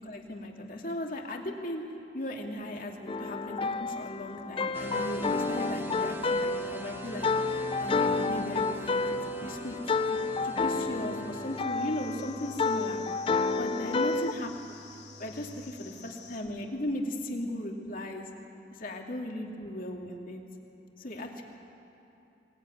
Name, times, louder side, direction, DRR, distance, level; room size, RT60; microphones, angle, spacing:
voice 1, 0.0-1.8 2.1-10.2 10.4-13.0 13.6-14.5 15.2-18.3 18.7-20.4 21.0-21.4, left 1 dB, 50° left, 1 dB, 2.5 m, -37 dB
sound 1, 3.1-14.3, left 4 dB, 30° left, 0.6 m, -30 dB
sound 2, 4.7-11.6, right 2 dB, 15° right, 1.1 m, -43 dB
sound 3, 7.1-16.4, left 3 dB, 65° left, 2.9 m, -50 dB
22.5 x 20.0 x 9.3 m, 2.8 s
head